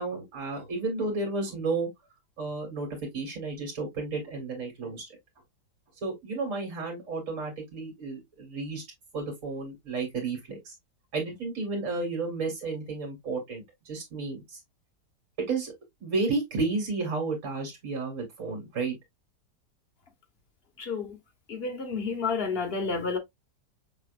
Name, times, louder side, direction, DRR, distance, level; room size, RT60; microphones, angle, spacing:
voice 1, 0.0-1.9 2.4-5.1 6.0-8.8 9.1-10.7 11.1-14.6 15.5-15.7 16.0-19.0, right 3 dB, 50° right, 2.3 m, -32 dB
voice 2, 20.8-21.2 21.5-23.2, left 4 dB, 40° left, 1.3 m, -30 dB
6.0 x 3.3 x 2.5 m
omnidirectional pair, 1.8 m